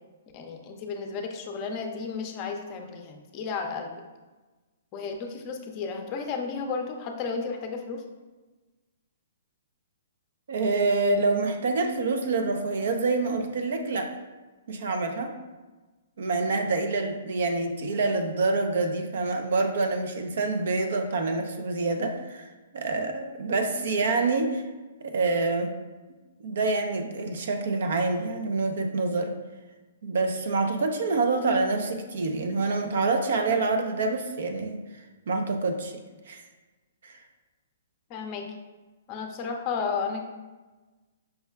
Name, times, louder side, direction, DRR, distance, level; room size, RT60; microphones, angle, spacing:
voice 1, 0.3-3.9 4.9-8.0 38.1-38.5 39.1-40.2, left 5 dB, 30° left, 3 dB, 0.5 m, -33 dB
voice 2, 10.5-14.1 14.7-15.3 16.2-22.4 22.7-24.6 25.0-25.7 26.4-29.4 30.0-34.8 35.3-35.9 36.3-36.4 37.0-37.2, right 3 dB, 70° right, 6 dB, 0.5 m, -26 dB
5.5 x 2.1 x 3.3 m, 1.2 s
hypercardioid pair, 150°, 0 cm